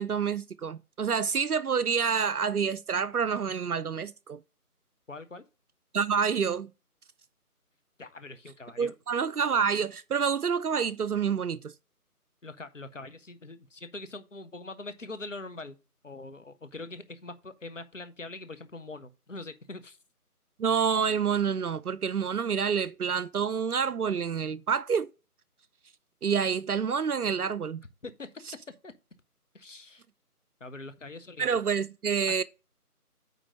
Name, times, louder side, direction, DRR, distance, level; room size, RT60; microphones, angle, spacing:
voice 1, 0.0-4.4 5.9-6.7 8.8-11.7 20.6-25.1 26.2-27.8 31.4-32.4, right 6 dB, 70° right, 0.6 m, -28 dB
voice 2, 5.1-5.4 8.0-8.9 12.4-15.8 16.0-20.0 28.0-28.9 29.5-30.0 30.6-31.6 32.3-32.4, left 2 dB, 55° left, 1.0 m, -43 dB
9.2 x 3.1 x 6.3 m
figure-of-eight pair, 170°, 46 cm